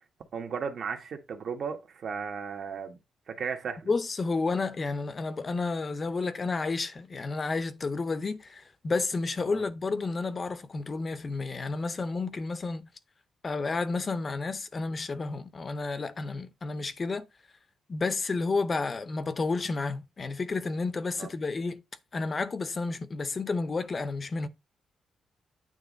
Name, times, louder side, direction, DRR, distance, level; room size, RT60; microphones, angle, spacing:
voice 1, 0.3-3.0 3.3-3.9 9.4-9.6 21.2-21.3, right 6 dB, 50° right, 1.4 m, -35 dB
voice 2, 3.9-12.9 13.4-17.3 17.9-21.8 22.1-24.5, left 3 dB, 30° left, 0.7 m, -31 dB
9.1 x 3.0 x 5.1 m
cardioid pair, 140°, 0 cm